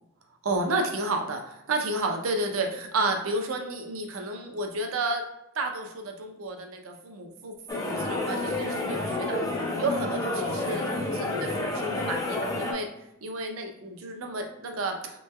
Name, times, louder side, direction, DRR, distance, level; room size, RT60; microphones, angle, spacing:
voice 1, 0.4-5.2 5.5-12.9 13.2-15.2, right 2 dB, 80° right, 4 dB, 0.5 m, -31 dB
sound 1, 7.7-12.7, left 2 dB, 15° left, 0.4 m, -29 dB
3.1 x 3.0 x 2.2 m, 0.85 s
head